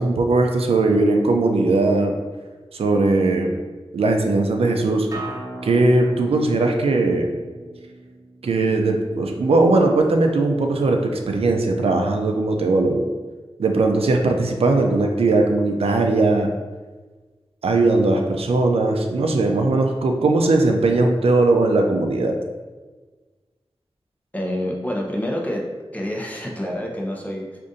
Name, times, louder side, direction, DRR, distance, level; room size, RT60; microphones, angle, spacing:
voice 1, 0.0-2.1 2.7-3.6 3.9-5.1 5.6-7.3 8.4-13.0 13.6-16.5 17.6-22.4, right 2 dB, 80° right, 3 dB, 0.4 m, -19 dB
Acoustic guitar, 5.1-10.3, right 2 dB, 35° right, 0.8 m, -39 dB
voice 2, 24.3-25.6 25.9-27.6, left 1 dB, 15° left, -2 dB, 0.7 m, -27 dB
4.8 x 2.5 x 2.6 m, 1.3 s
wide cardioid pair, 70°, 10 cm